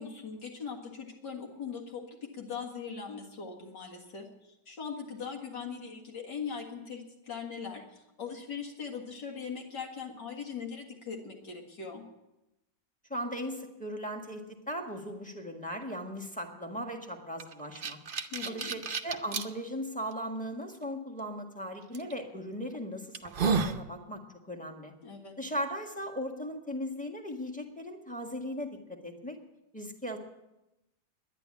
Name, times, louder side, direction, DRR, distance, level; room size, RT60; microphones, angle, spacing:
voice 1, 0.0-12.0 18.3-18.8 25.0-25.4, left 6 dB, 85° left, -1 dB, 2.6 m, -40 dB
voice 2, 13.1-18.0 18.4-24.2 24.5-24.9 25.4-29.4 29.7-30.2, equal, 5° left, 4 dB, 1.5 m, -38 dB
sound 1, 17.4-19.5 20.1-20.2 21.9-22.1 22.7-22.8 23.1-23.8, right 5 dB, 50° right, 0.6 m, -31 dB
11.0 x 10.5 x 9.6 m, 0.94 s
omnidirectional pair, 1.8 m